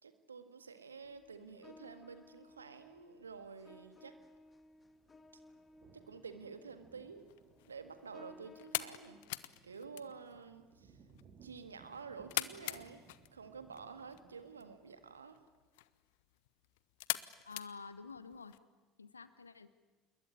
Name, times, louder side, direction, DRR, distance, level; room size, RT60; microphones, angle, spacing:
voice 1, 0.0-4.1 5.9-7.2 7.7-9.2 9.6-10.9 11.4-13.0 13.3-15.4, right 5 dB, 80° right, 10 dB, 1.7 m, -50 dB
sound 1, 1.0-9.2, left 2 dB, 20° left, 1.7 m, -60 dB
sound 2, 4.8-15.2, right 5 dB, 45° right, 3.7 m, -64 dB
sound 3, 7.2-18.6, left 19 dB, 65° left, 0.8 m, -45 dB
voice 2, 17.4-18.5 19.0-19.7, left 5 dB, 80° left, 14 dB, 1.1 m, -49 dB
27.0 x 21.5 x 9.6 m, 1.3 s
figure-of-eight pair, 65°, 0 cm